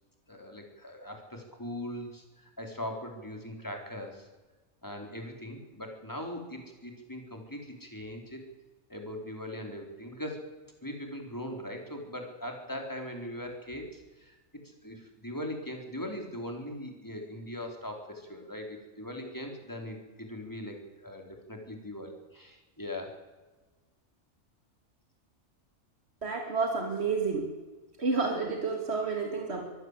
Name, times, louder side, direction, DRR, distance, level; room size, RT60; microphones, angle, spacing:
voice 1, 0.3-4.3 4.8-8.4 8.9-10.5 10.8-14.4 14.6-23.1, left 1 dB, 15° left, 2 dB, 4.4 m, -40 dB
voice 2, 26.2-27.5 28.0-29.6, right 4 dB, 50° right, 2 dB, 3.3 m, -30 dB
25.0 x 15.0 x 8.4 m, 1.2 s
omnidirectional pair, 1.4 m